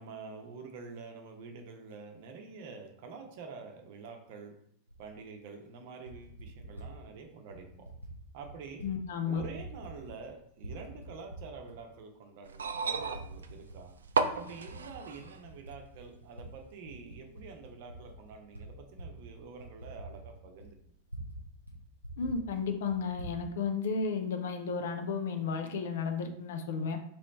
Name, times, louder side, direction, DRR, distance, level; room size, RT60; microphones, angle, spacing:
voice 1, 0.0-4.5 5.0-7.9 8.3-8.9 9.2-13.9 14.3-20.9, right 4 dB, 50° right, 3 dB, 0.7 m, -47 dB
Typing, 4.9-5.0 5.8-6.9 7.5-8.1 8.4-8.9 9.2-10.3 10.6-11.8 12.3-12.4 13.0-13.8 14.1-16.5 16.8-21.4 21.7-21.8 22.0-23.4, right 1 dB, 90° left, 0.9 m, -46 dB
voice 2, 8.8-9.4 22.2-27.0, left 5 dB, 60° left, 6 dB, 0.5 m, -33 dB
sound 1, 12.5-15.4 16.5-16.6, right 4 dB, 70° right, 0.3 m, -33 dB
3.1 x 3.1 x 4.0 m, 0.69 s
figure-of-eight pair, 90°, 0 cm